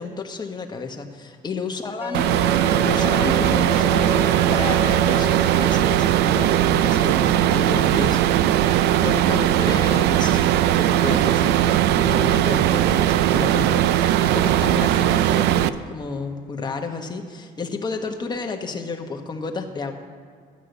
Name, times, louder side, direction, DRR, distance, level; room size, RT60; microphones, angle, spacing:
voice 1, 0.0-19.9, left 4 dB, 25° left, 3 dB, 1.3 m, -31 dB
Wind instrument woodwind instrument, 2.0-6.1, left 3 dB, 10° right, 1.4 m, -32 dB
sound 1, 2.1-15.7, right 12 dB, 80° right, 0.5 m, -19 dB
12.5 x 6.0 x 8.2 m, 2.1 s
cardioid pair, 110°, 17 cm